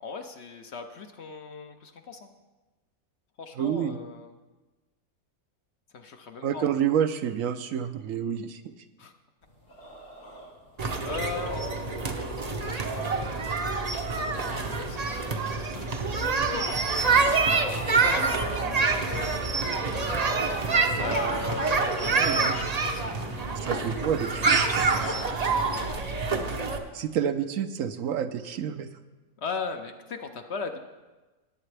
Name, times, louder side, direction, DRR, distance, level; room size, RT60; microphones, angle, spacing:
voice 1, 0.0-2.3 3.4-4.3 5.9-6.7 9.0-9.1 11.0-12.0 12.7-13.5 14.6-19.8 21.0-23.8 24.9-26.0 29.4-30.8, left 4 dB, 55° left, 6 dB, 0.9 m, -39 dB
voice 2, 3.5-4.0 6.4-8.6 22.1-22.5 23.6-25.1 26.9-28.9, right 8 dB, 70° right, 9 dB, 1.0 m, -29 dB
sound 1, 9.4-19.8, equal, 85° left, 3.8 m, -42 dB
sound 2, 10.8-26.8, right 4 dB, 40° right, 0.6 m, -26 dB
sound 3, 19.2-25.1, left 4 dB, 70° left, 1.4 m, -47 dB
18.5 x 8.3 x 3.3 m, 1.2 s
omnidirectional pair, 1.5 m